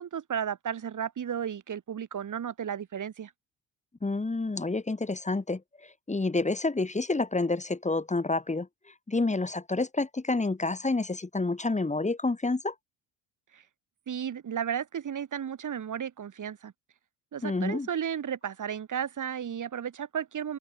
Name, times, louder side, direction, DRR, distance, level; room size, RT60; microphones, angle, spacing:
voice 1, 0.0-3.3 13.5-13.6 14.1-16.7 17.3-20.6, right 8 dB, 45° right, 4.3 m, -34 dB
voice 2, 4.0-8.7 9.1-12.7 17.4-17.9, left 3 dB, 15° left, 3.5 m, -29 dB
open air
supercardioid pair, 75°, 42 cm